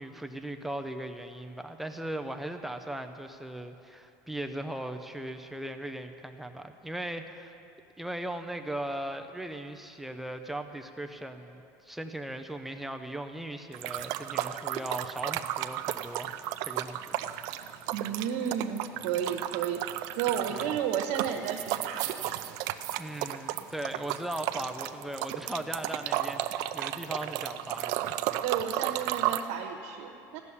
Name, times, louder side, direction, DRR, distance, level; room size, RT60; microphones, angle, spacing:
voice 1, 0.0-7.6 8.0-16.3 16.6-17.2 20.5-20.6 23.0-28.2, right 1 dB, 5° right, 5 dB, 0.6 m, -38 dB
sound 1, 13.7-29.4, right 14 dB, 60° right, 0.5 m, -33 dB
voice 2, 17.9-19.8 20.2-22.2 28.4-30.4, right 8 dB, 90° right, 1 dB, 1.2 m, -32 dB
15.0 x 7.0 x 9.7 m, 2.7 s
cardioid pair, 160°, 7 cm